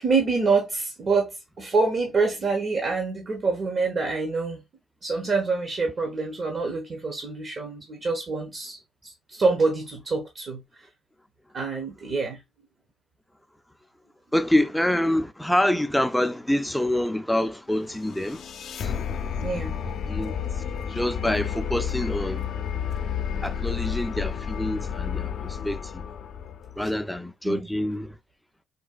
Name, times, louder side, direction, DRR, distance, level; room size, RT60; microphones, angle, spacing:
voice 1, 0.0-4.6 5.0-10.6 11.5-12.4 19.4-19.9 26.8-26.9 27.4-27.7, right 4 dB, 50° right, 0.9 m, -26 dB
voice 2, 14.3-18.5 18.8-18.9 20.1-20.3 20.9-22.5 23.4-26.0 26.8-28.2, left 1 dB, 5° left, 0.4 m, -26 dB
sound 1, 17.8-26.9, left 8 dB, 65° left, 0.4 m, -31 dB
4.0 x 2.3 x 2.3 m
cardioid pair, 90°, 0 cm